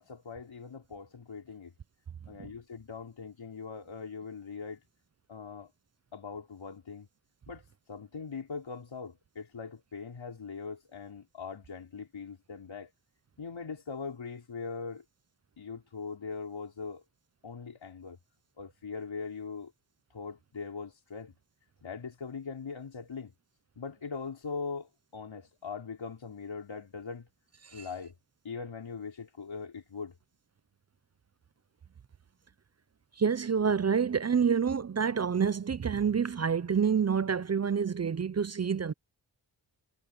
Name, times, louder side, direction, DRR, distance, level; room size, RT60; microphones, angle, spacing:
voice 1, 0.0-1.7 2.3-4.8 5.3-5.7 6.1-7.1 7.5-12.9 13.4-15.0 15.6-17.0 17.4-18.2 18.6-19.7 20.1-21.3 21.8-23.3 23.8-27.3 27.7-28.1 28.4-30.2, left 5 dB, 90° left, 4.7 m, -41 dB
voice 2, 33.2-38.9, right 6 dB, 35° right, 0.5 m, -28 dB
wide cardioid pair, 85°, 45 cm